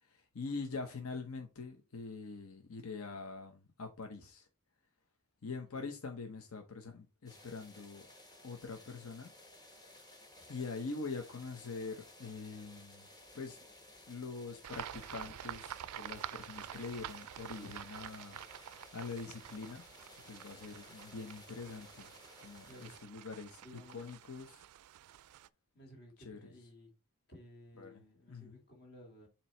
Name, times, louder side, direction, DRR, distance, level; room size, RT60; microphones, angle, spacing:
voice 1, 0.0-4.5 5.4-8.1 8.4-9.3 10.5-13.1 13.3-13.6 14.1-18.4 18.9-19.8 20.2-22.1 22.4-23.6 23.9-24.6 26.3-26.5 27.8-28.0 28.3-28.6, left 4 dB, 70° left, 0.9 m, -44 dB
voice 2, 5.5-5.9 22.7-23.0 23.6-24.0 25.7-26.9 27.3-29.3, left 1 dB, 50° left, 2.3 m, -56 dB
sound 1, 7.3-23.0, left 1 dB, 20° left, 1.4 m, -57 dB
sound 2, 14.6-25.5, right 11 dB, 90° right, 0.3 m, -48 dB
7.2 x 3.0 x 4.3 m
head